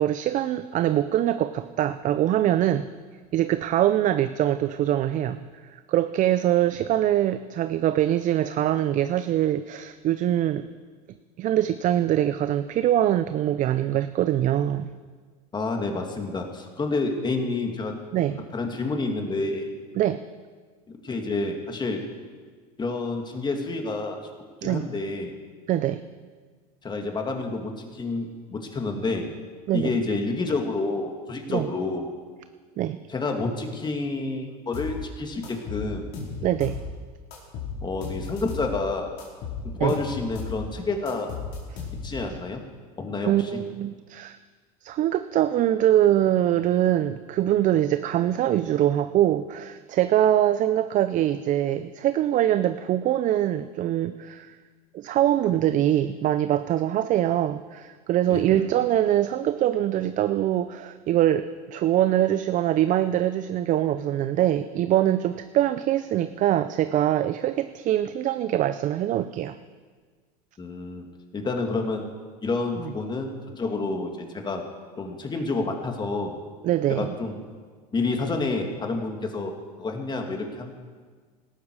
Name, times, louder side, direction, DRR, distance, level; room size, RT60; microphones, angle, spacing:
voice 1, 0.0-2.9 3.3-5.4 5.7-10.7 11.4-14.9 18.1-18.4 20.0-20.2 24.6-24.9 25.7-26.0 29.7-29.9 31.5-31.7 32.8-33.0 36.4-36.8 39.8-39.9 43.2-44.4 44.8-54.6 54.9-69.6 76.6-77.1, right 12 dB, 40° right, 12 dB, 0.6 m, -23 dB
voice 2, 15.5-17.9 18.5-19.7 21.0-22.0 22.8-24.2 24.6-25.3 26.8-29.3 29.7-32.1 33.1-36.1 37.8-39.1 39.7-41.4 42.0-42.6 43.0-43.6 58.3-58.6 70.6-71.1 71.3-72.1 72.4-74.7 75.0-76.3 76.9-77.3 77.9-79.5 79.8-80.7, left 3 dB, 20° left, 3 dB, 2.5 m, -29 dB
sound 1, 34.7-35.0 35.4-36.9 37.3-38.7 39.2-40.6 41.1-42.3, left 5 dB, 60° left, 4.9 m, -35 dB
17.5 x 13.5 x 4.9 m, 1.5 s
hypercardioid pair, 100°, 20 cm